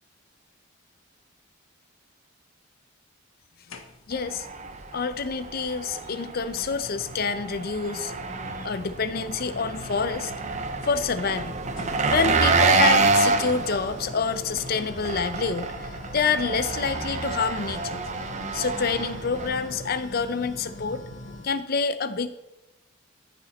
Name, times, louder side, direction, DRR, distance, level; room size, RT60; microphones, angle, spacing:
sound 1, 3.7-4.3 5.7-5.8 6.5-21.6, left 2 dB, 70° left, 0.9 m, -42 dB
voice 1, 4.1-4.5 4.9-8.1 8.6-10.3 10.8-11.6 12.1-18.0 18.5-21.0 21.4-22.3, left 5 dB, 45° left, 12 dB, 0.5 m, -27 dB
Engine, 4.1-19.9, right 3 dB, 35° right, 0.6 m, -28 dB
sound 2, 8.4-8.8 9.7-10.0 10.3-10.6 11.2-11.4 11.9-12.6, left 2 dB, 20° left, 3.5 m, -52 dB
13.5 x 4.9 x 4.2 m, 0.95 s
head